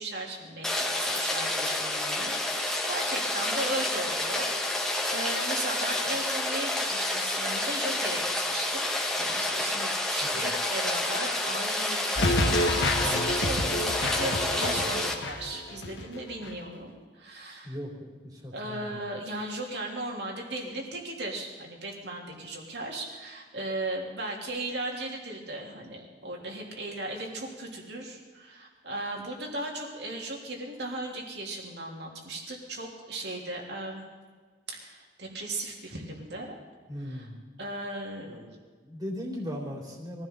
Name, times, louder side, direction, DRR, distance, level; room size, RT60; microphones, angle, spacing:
voice 1, 0.0-8.9 9.2-17.7 18.5-34.0 34.7-36.6 37.1-37.2 37.6-38.6, right 2 dB, 65° right, 0 dB, 3.4 m, -37 dB
Rain, 0.6-15.1, left 2 dB, 5° left, 1.6 m, -29 dB
sound 1, 12.2-16.2 16.4-16.5, left 1 dB, 85° left, 1.6 m, -28 dB
voice 2, 17.6-19.0 36.9-37.3 38.8-40.3, equal, 20° right, -1 dB, 3.3 m, -38 dB
23.5 x 15.5 x 4.0 m, 1.4 s
head